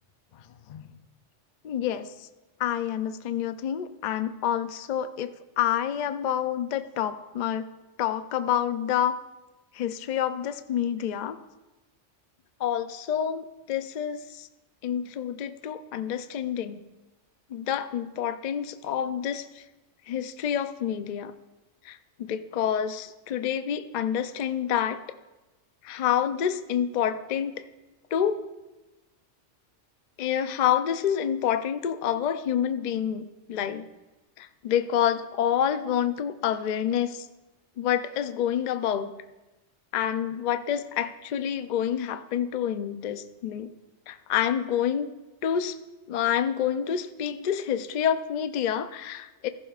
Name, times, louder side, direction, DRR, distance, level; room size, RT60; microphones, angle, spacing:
voice 1, 1.6-2.3 2.6-5.3 5.6-7.7 8.0-9.2 9.7-11.4 12.6-14.5 14.8-16.8 17.5-19.6 20.1-21.3 21.8-25.0 25.8-27.6 28.1-28.5 30.2-33.9 34.4-37.3 37.8-39.1 39.9-43.7 44.1-45.1 45.4-45.8 46.1-49.5, left 9 dB, 55° left, 10 dB, 0.5 m, -28 dB
15.0 x 14.5 x 2.4 m, 1.1 s
omnidirectional pair, 1.2 m